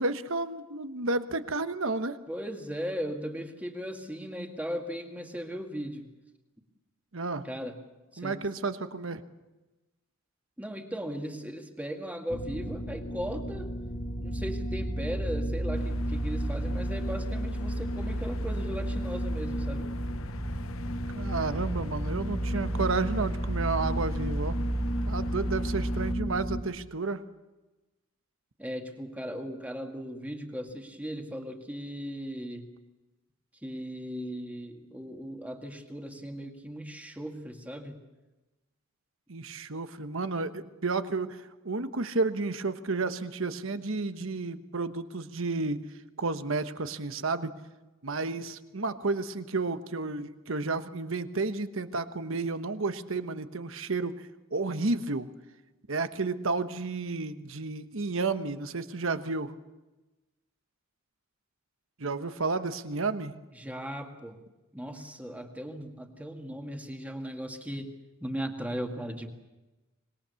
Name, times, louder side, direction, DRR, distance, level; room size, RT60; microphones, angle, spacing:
voice 1, 0.0-2.2 7.1-7.4 8.2-9.2 21.1-24.5 25.1-27.2 39.3-41.4 41.6-45.8 46.2-47.5 48.0-54.2 54.5-55.3 55.9-59.5 62.0-63.3, right 3 dB, 65° right, 10 dB, 1.2 m, -31 dB
voice 2, 2.3-6.1 7.4-7.8 8.1-8.4 10.6-13.7 14.2-19.9 28.6-32.7 33.6-38.0 63.6-64.4 64.7-67.9 68.2-69.3, equal, 5° right, 4 dB, 2.0 m, -37 dB
sound 1, 12.3-26.6, right 1 dB, 40° left, 1.5 m, -32 dB
sound 2, 15.7-26.1, left 3 dB, 70° left, 0.8 m, -44 dB
25.5 x 21.0 x 7.1 m, 1.1 s
head